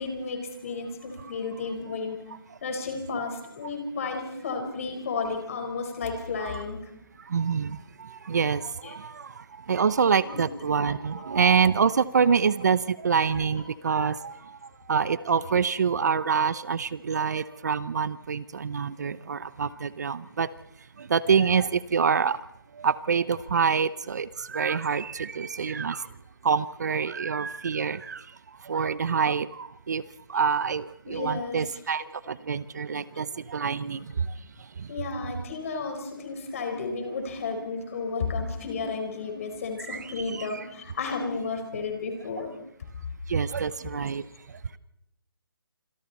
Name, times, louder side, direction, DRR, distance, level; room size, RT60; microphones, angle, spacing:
voice 1, 0.0-2.2 2.6-6.9 8.8-8.9 10.2-10.4 10.9-11.2 31.1-31.7 34.9-42.5 44.2-44.3, left 4 dB, 40° left, 5 dB, 4.6 m, -33 dB
voice 2, 7.2-20.5 21.0-22.4 22.7-26.1 26.4-30.0 30.3-34.9 39.9-40.6 43.3-44.6, right 6 dB, 50° right, 17 dB, 0.8 m, -26 dB
29.0 x 26.5 x 4.2 m, 0.78 s
hypercardioid pair, 165°, 12 cm